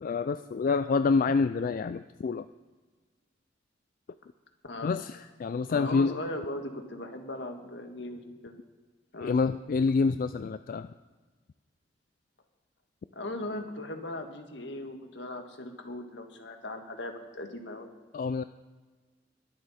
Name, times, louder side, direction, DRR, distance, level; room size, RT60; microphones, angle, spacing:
voice 1, 0.0-2.5 4.8-6.2 9.2-10.9 18.1-18.4, left 4 dB, 50° left, 12 dB, 0.3 m, -27 dB
voice 2, 5.7-8.6 9.1-9.3 13.1-17.9, left 1 dB, 75° left, 5 dB, 1.6 m, -38 dB
21.5 x 7.9 x 4.2 m, 1.4 s
head